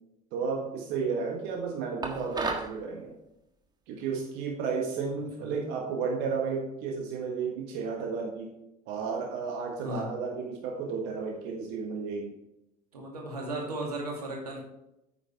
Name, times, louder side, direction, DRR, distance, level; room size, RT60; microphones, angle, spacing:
voice 1, 0.3-3.2 3.9-8.5 8.9-12.4, right 5 dB, 65° right, 1 dB, 1.6 m, -33 dB
sound 1, 2.0-2.8, right 3 dB, 20° right, 1.5 m, -32 dB
voice 2, 12.9-14.6, right 1 dB, 90° right, -1 dB, 2.4 m, -35 dB
9.6 x 8.5 x 3.5 m, 0.86 s
hypercardioid pair, 65°, 19 cm